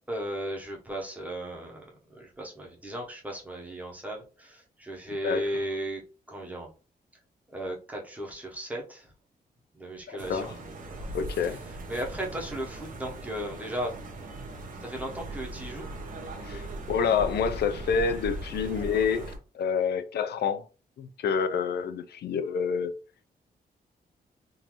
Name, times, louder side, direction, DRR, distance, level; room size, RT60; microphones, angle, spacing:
voice 1, 0.1-1.9 2.1-6.0 6.3-6.7 7.5-9.1 9.7-10.5 10.9-11.0 11.9-13.9 14.8-15.9, right 1 dB, 10° right, 0.8 m, -35 dB
voice 2, 10.1-10.5 11.1-11.6 16.4-20.7 21.0-22.9, left 6 dB, 90° left, 0.5 m, -28 dB
sound 1, 10.2-19.4, right 1 dB, 55° right, 0.9 m, -39 dB
3.7 x 2.6 x 2.9 m
wide cardioid pair, 175°, 16 cm